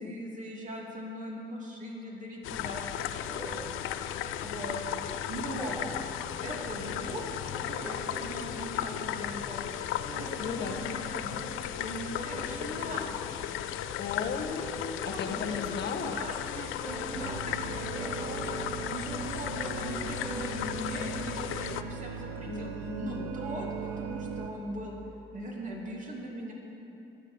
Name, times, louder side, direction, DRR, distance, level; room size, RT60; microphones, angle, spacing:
voice 1, 0.0-3.6 3.9-4.8 5.3-5.8 6.4-7.2 7.5-9.6 10.1-13.1 15.0-18.5 18.9-22.7 23.0-25.0 25.3-26.5, right 1 dB, 40° right, -2 dB, 2.6 m, -40 dB
sound 1, 2.4-21.8, left 11 dB, 85° left, 0.4 m, -36 dB
sound 2, 3.3-17.7 18.0-22.4, right 2 dB, 10° right, 0.5 m, -47 dB
voice 2, 10.4-10.8 14.0-16.2 22.5-23.3, left 6 dB, 60° left, 4 dB, 0.9 m, -36 dB
sound 3, 17.1-24.5, right 5 dB, 85° right, 0.8 m, -39 dB
12.5 x 8.5 x 6.3 m, 3.0 s
cardioid pair, 90°, 20 cm